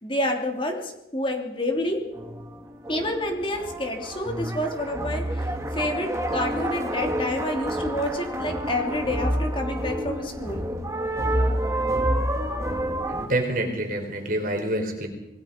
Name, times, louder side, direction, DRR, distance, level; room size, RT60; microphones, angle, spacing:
voice 1, 0.0-2.0 2.9-10.6, left 1 dB, 25° left, 3 dB, 3.1 m, -28 dB
sound 1, 1.9-13.3, right 1 dB, 15° right, 1.8 m, -28 dB
voice 2, 13.1-15.1, right 1 dB, 45° right, 4 dB, 4.2 m, -27 dB
27.0 x 20.0 x 5.3 m, 0.87 s
head